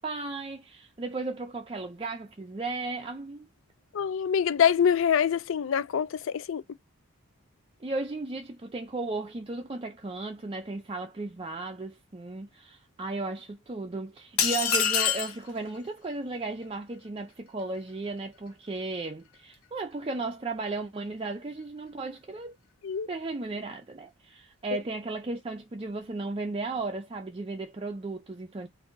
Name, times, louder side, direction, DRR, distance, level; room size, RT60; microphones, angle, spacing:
voice 1, 0.0-3.5 7.8-22.6 23.1-28.7, right 3 dB, 25° right, 0.4 m, -35 dB
voice 2, 3.9-6.1 6.3-6.6 22.8-23.1, left 8 dB, 65° left, 0.4 m, -24 dB
sound 1, 14.4-15.4, left 7 dB, 90° left, 1.0 m, -25 dB
3.7 x 2.6 x 3.8 m
head